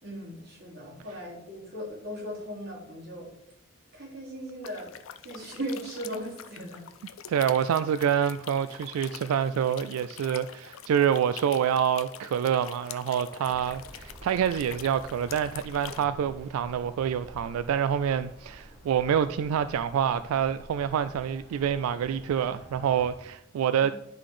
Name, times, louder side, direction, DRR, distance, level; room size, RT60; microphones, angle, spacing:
voice 1, 0.0-3.3 3.9-4.9 5.2-6.8, equal, 45° right, 3.1 m, -38 dB
sound 1, 4.6-16.0, left 9 dB, 70° left, 0.4 m, -45 dB
voice 2, 7.3-23.9, right 8 dB, 85° right, 0.3 m, -27 dB
sound 2, 13.4-23.1, equal, ahead, 1.1 m, -49 dB
10.0 x 3.9 x 4.9 m
head